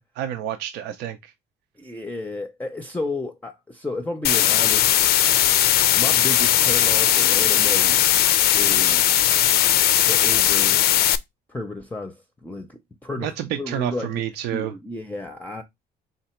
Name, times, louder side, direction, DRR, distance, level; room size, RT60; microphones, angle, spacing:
voice 1, 0.0-1.3 13.2-14.7, right 11 dB, 80° right, 0.5 m, -29 dB
voice 2, 1.8-4.9 6.0-8.0 8.6-9.1 10.1-10.9 11.5-14.2 14.5-15.6, left 2 dB, 10° left, 0.6 m, -32 dB
sound 1, 4.2-11.2, left 12 dB, 65° left, 0.4 m, -18 dB
3.9 x 2.9 x 4.3 m
cardioid pair, 110°, 17 cm